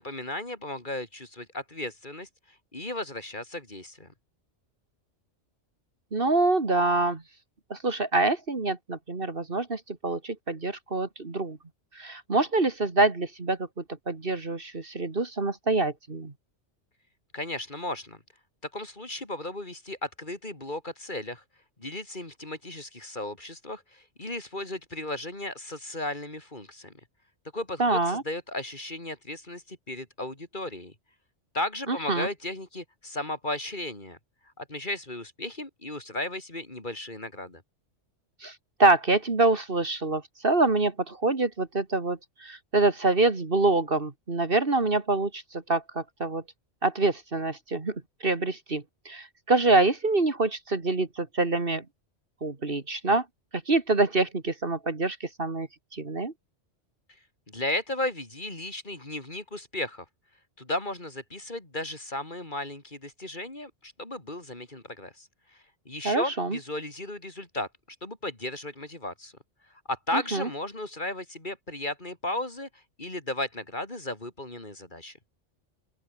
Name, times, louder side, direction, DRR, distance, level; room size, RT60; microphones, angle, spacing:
voice 1, 0.0-4.1 17.3-18.2 18.6-21.4 21.8-26.9 27.5-30.9 31.5-34.2 34.6-37.6 57.5-60.1 60.6-67.7 68.0-69.3 69.9-75.2, left 1 dB, 40° left, 4.0 m, -35 dB
voice 2, 6.1-7.2 7.7-11.6 11.9-16.3 27.8-28.2 31.9-32.3 38.4-46.4 46.8-51.8 52.4-53.2 53.7-56.3 66.0-66.6 70.1-70.5, right 2 dB, 50° right, 2.4 m, -26 dB
open air
omnidirectional pair, 1.2 m